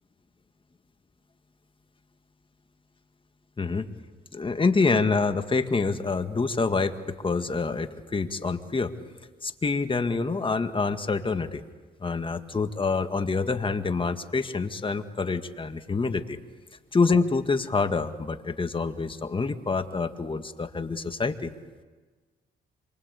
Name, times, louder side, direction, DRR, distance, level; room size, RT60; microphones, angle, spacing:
voice 1, 4.3-8.9 9.4-11.6 12.0-16.4 16.9-21.5, left 4 dB, 25° left, 8 dB, 1.9 m, -26 dB
27.5 x 24.5 x 8.4 m, 1.4 s
cardioid pair, 90°, 20 cm